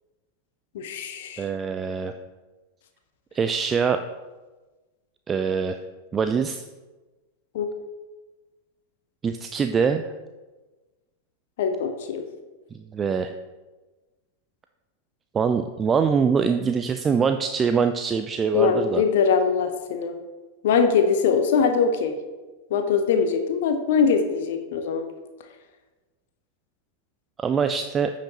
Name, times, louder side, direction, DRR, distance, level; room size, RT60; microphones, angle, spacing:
voice 1, 0.7-1.4 7.5-7.7 11.6-12.2 18.5-20.2 20.6-22.1 22.7-25.1, left 6 dB, 55° left, 7 dB, 0.7 m, -22 dB
voice 2, 1.4-2.1 3.3-4.0 5.3-5.8 6.1-6.6 9.2-10.1 12.7-13.3 15.3-19.0 27.4-28.1, right 6 dB, 20° right, 8 dB, 0.3 m, -23 dB
9.7 x 5.8 x 2.9 m, 1.2 s
figure-of-eight pair, 90°, 0 cm